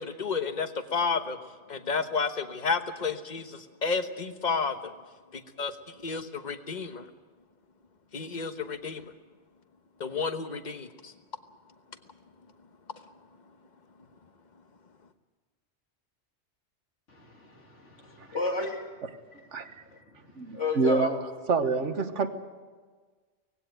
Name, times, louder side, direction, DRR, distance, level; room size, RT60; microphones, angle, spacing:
voice 1, 0.0-1.4 1.7-4.9 5.3-7.1 8.1-9.1 10.0-11.1, left 5 dB, 40° left, 9 dB, 1.2 m, -31 dB
voice 2, 17.1-19.0 19.3-19.4 19.9-21.2, left 3 dB, 85° left, 1 dB, 3.2 m, -34 dB
voice 3, 19.5-19.8 20.4-21.1 21.5-22.3, right 4 dB, 90° right, 8 dB, 1.6 m, -27 dB
19.0 x 16.5 x 9.2 m, 1.4 s
omnidirectional pair, 1.2 m